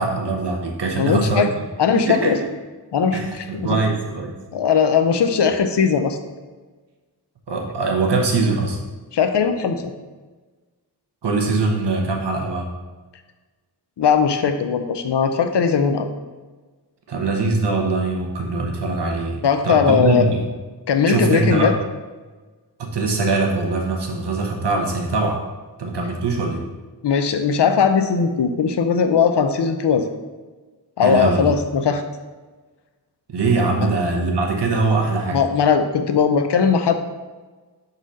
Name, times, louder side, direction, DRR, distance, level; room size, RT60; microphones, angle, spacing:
voice 1, 0.0-1.5 1.9-2.5 3.1-4.3 7.5-8.8 11.2-12.7 17.1-20.4 21.1-21.7 22.8-25.4 25.8-26.6 31.0-31.6 33.3-35.4, right 3 dB, 80° right, 1 dB, 1.1 m, -22 dB
voice 2, 1.0-1.5 1.8-2.4 2.9-3.8 4.5-6.2 9.1-9.9 14.0-16.1 19.4-20.3 20.9-21.7 27.0-30.1 31.0-32.0 35.3-36.9, left 6 dB, 85° left, 8 dB, 0.6 m, -19 dB
6.2 x 4.0 x 4.1 m, 1.3 s
wide cardioid pair, 105°, 41 cm